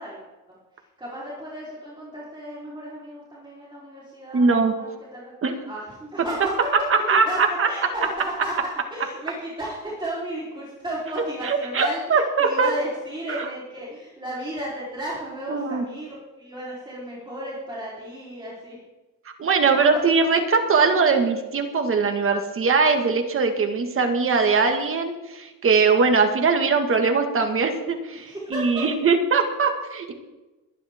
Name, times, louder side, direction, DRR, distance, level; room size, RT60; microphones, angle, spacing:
voice 1, 0.0-5.3 5.6-6.5 6.9-8.5 8.9-18.8 20.7-20.8 28.1-28.8, right 1 dB, 15° right, -7 dB, 4.0 m, -34 dB
voice 2, 4.3-4.7 5.4-5.5 7.1-7.7 11.4-12.7 13.3-13.4 15.5-15.8 19.4-30.1, right 4 dB, 40° right, 4 dB, 1.9 m, -21 dB
21.5 x 10.5 x 3.7 m, 1.1 s
cardioid pair, 145°, 33 cm